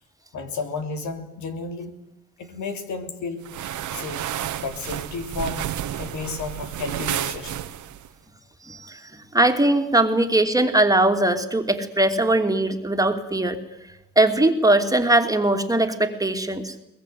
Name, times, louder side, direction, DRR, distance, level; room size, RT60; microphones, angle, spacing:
voice 1, 0.3-1.9 2.4-3.4 3.9-4.2 4.6-7.6, left 3 dB, 70° left, 6 dB, 3.4 m, -32 dB
sound 1, 3.4-8.1, right 11 dB, 75° right, 1.6 m, -31 dB
voice 2, 9.3-13.6 14.2-16.7, right 2 dB, 10° right, 5 dB, 2.7 m, -20 dB
22.5 x 21.0 x 9.4 m, 0.86 s
cardioid pair, 90°, 30 cm